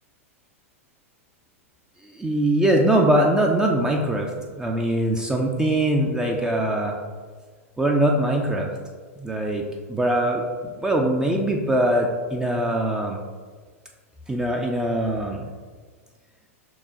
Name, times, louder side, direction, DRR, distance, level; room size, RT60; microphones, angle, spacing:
voice 1, 2.0-7.0 7.8-8.7 9.2-13.2 14.3-15.5, right 1 dB, 10° right, 1 dB, 0.4 m, -22 dB
6.0 x 2.1 x 3.7 m, 1.5 s
hypercardioid pair, 105°, 8 cm